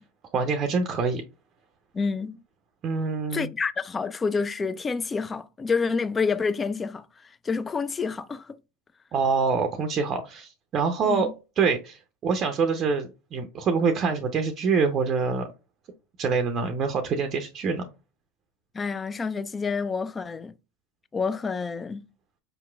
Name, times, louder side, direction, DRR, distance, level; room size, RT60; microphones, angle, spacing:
voice 1, 0.3-1.2 2.8-3.5 9.1-11.3 11.6-15.5 16.2-17.9, right 5 dB, 40° right, 0.5 m, -25 dB
voice 2, 1.9-2.4 3.3-7.1 7.4-8.6 11.0-11.3 18.7-20.5 21.1-22.0, left 5 dB, 20° left, 0.3 m, -28 dB
5.0 x 2.9 x 2.3 m
hypercardioid pair, 85°, 0 cm